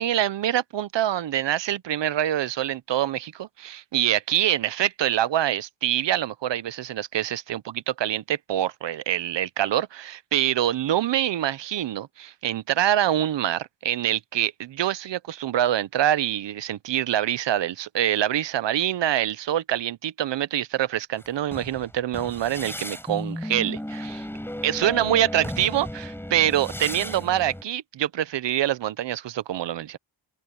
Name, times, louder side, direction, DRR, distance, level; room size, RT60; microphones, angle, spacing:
voice 1, 0.0-24.2 24.6-30.0, right 11 dB, 60° right, 0.8 m, -25 dB
sound 1, 21.2-27.6, left 1 dB, 5° left, 7.9 m, -34 dB
open air
cardioid pair, 115°, 49 cm